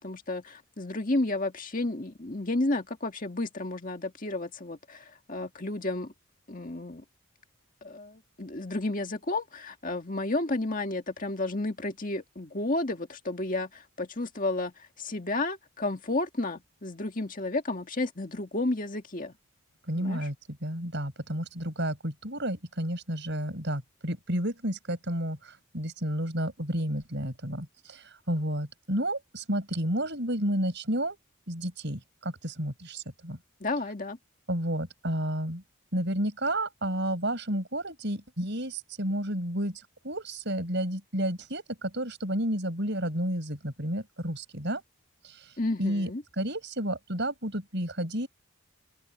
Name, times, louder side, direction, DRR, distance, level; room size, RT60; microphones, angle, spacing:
voice 1, 0.0-6.1 6.5-7.0 7.8-19.3 19.9-20.2 33.6-34.2 45.6-46.2, left 2 dB, 35° left, 2.0 m, -32 dB
voice 2, 19.9-20.4 20.6-31.2 31.5-33.4 34.5-35.6 35.9-44.8 45.2-45.5 45.8-46.1 46.4-48.3, right 1 dB, 55° right, 7.0 m, -31 dB
open air
head